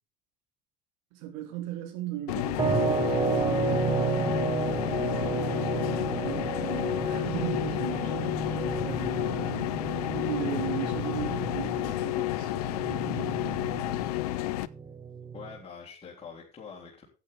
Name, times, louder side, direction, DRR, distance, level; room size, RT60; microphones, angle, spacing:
voice 1, 1.1-9.7 10.1-13.6, right 12 dB, 65° right, 3.5 m, -38 dB
sound 1, 2.3-14.7, left 17 dB, 70° left, 0.6 m, -31 dB
sound 2, 2.6-15.6, right 5 dB, 20° right, 1.4 m, -32 dB
voice 2, 15.3-17.1, left 6 dB, 30° left, 3.6 m, -45 dB
14.5 x 8.5 x 3.6 m
figure-of-eight pair, 60°, 21 cm